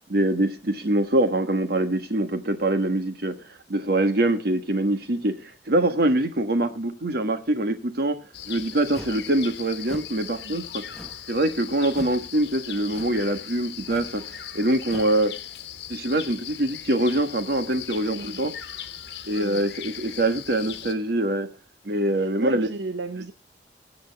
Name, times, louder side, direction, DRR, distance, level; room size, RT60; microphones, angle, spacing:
voice 1, 0.1-8.2 8.5-10.8 11.3-15.3 15.9-18.5 19.3-21.5 21.8-22.7, right 1 dB, 60° right, 1.5 m, -24 dB
sound 1, 8.3-21.0, left 10 dB, 65° left, 1.2 m, -39 dB
sound 2, 8.9-9.3 9.8-10.2 10.9-11.3 11.9-12.2 12.9-13.3 13.8-14.2 14.8-15.2, equal, 5° left, 1.2 m, -42 dB
voice 2, 18.0-18.4 19.4-19.7 22.2-23.3, right 3 dB, 80° right, 0.9 m, -34 dB
22.0 x 8.0 x 3.5 m
head